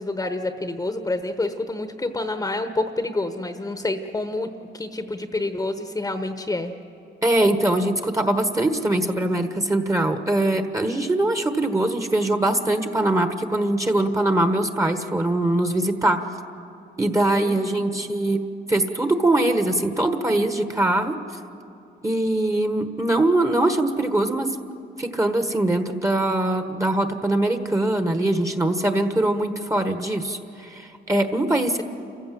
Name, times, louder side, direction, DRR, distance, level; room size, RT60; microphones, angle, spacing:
voice 1, 0.0-4.5 4.7-6.7 17.3-17.8, left 2 dB, 15° left, 8 dB, 1.1 m, -28 dB
voice 2, 7.2-16.2 17.0-21.1 22.0-24.5 25.0-31.8, right 1 dB, 15° right, 8 dB, 1.3 m, -22 dB
28.0 x 15.0 x 7.7 m, 2.6 s
cardioid pair, 90°, 20 cm